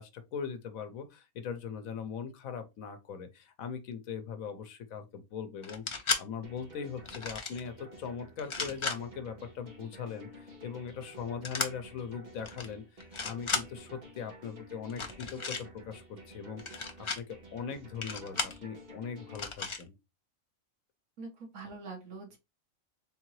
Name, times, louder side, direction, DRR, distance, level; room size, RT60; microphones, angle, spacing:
voice 1, 0.0-16.8 17.2-19.9, left 7 dB, 90° left, 1.1 m, -40 dB
sound 1, 5.6-6.2 7.0-7.6 8.4-9.0 11.4-11.7 12.4-12.7 13.0-13.6 14.9-15.6 16.6-17.2 18.0-18.6 19.3-19.8, left 4 dB, 45° left, 0.3 m, -34 dB
sound 2, 6.4-19.4, right 1 dB, 35° right, 1.2 m, -51 dB
voice 2, 21.2-22.4, right 3 dB, 75° right, 1.4 m, -44 dB
3.7 x 3.6 x 3.1 m
omnidirectional pair, 1.4 m